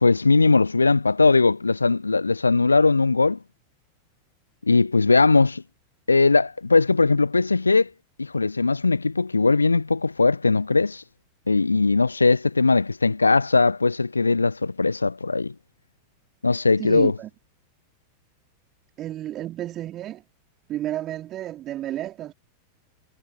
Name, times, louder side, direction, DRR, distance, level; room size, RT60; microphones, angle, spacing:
voice 1, 0.0-3.4 4.7-5.6 6.1-7.9 8.2-11.0 11.5-15.5 16.4-17.1, left 3 dB, 80° left, 0.6 m, -19 dB
voice 2, 16.8-17.3 19.0-20.2 20.7-22.3, right 13 dB, 30° right, 4.0 m, -31 dB
figure-of-eight pair, 90°, 0 cm